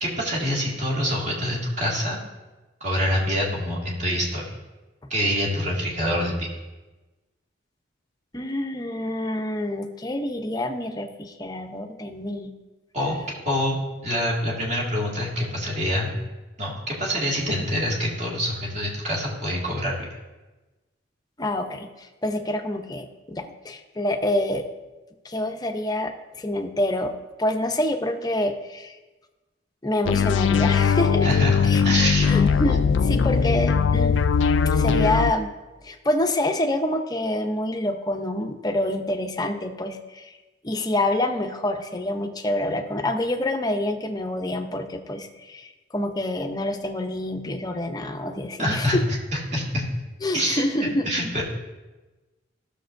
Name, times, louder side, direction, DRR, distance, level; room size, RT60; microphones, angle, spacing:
voice 1, 0.0-2.2 2.8-4.4 5.1-6.5 12.9-13.1 13.5-13.8 14.0-16.2 16.6-20.1 31.2-32.3 48.6-49.0 49.3-49.8 50.3-51.4, equal, 40° right, -4 dB, 2.1 m, -26 dB
voice 2, 8.3-12.5 21.4-24.6 25.2-27.1 27.4-29.0 29.8-31.3 31.6-31.8 32.3-34.2 34.7-35.5 35.8-40.3 40.6-49.0 50.2-51.3, left 1 dB, 20° left, 5 dB, 0.6 m, -27 dB
sound 1, 30.0-35.3, left 6 dB, 70° left, 0.4 m, -20 dB
15.5 x 6.6 x 2.6 m, 1.2 s
head